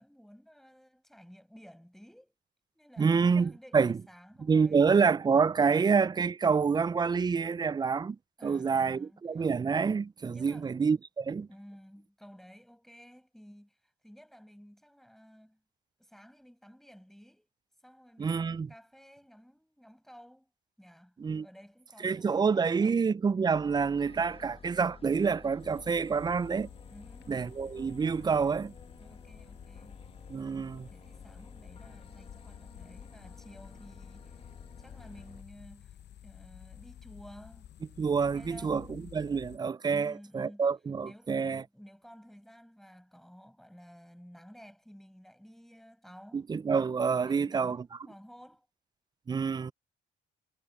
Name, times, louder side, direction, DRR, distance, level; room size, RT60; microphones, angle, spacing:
voice 1, 0.0-2.3 2.7-4.9 8.4-9.5 10.3-10.7 11.5-15.6 16.0-17.5 17.8-20.5 20.8-23.1 26.9-27.6 29.0-30.0 30.9-34.4 34.8-35.9 36.2-37.7 38.3-38.9 39.9-40.7 41.0-46.4 47.2-48.7, equal, ahead, 6.7 m, -53 dB
voice 2, 3.0-4.0 4.5-8.2 8.4-11.5 18.2-18.7 21.2-21.5 22.0-26.7 27.3-28.7 30.3-30.9 38.0-41.6 46.3-47.9 49.3-49.7, right 5 dB, 20° right, 0.3 m, -27 dB
sound 1, 23.5-35.4, left 4 dB, 30° left, 1.4 m, -52 dB
sound 2, 25.6-39.6, left 11 dB, 60° left, 0.8 m, -52 dB
cardioid pair, 90°, 20 cm